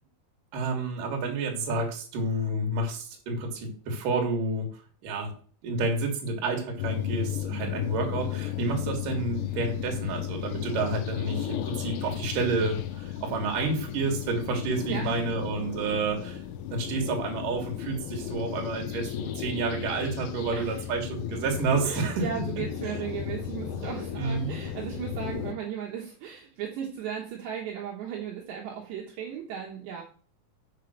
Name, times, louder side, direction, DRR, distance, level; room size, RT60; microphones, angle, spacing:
voice 1, 0.5-4.7 5.0-5.3 5.6-16.4 16.7-22.2 24.2-24.5, right 3 dB, 50° right, 2 dB, 3.1 m, -29 dB
sound 1, 6.8-25.5, left 11 dB, 80° left, 2.8 m, -35 dB
voice 2, 14.9-15.3 20.4-20.9 21.8-30.0, right 8 dB, 70° right, -1 dB, 3.2 m, -36 dB
6.9 x 5.6 x 6.5 m, 0.42 s
omnidirectional pair, 5.6 m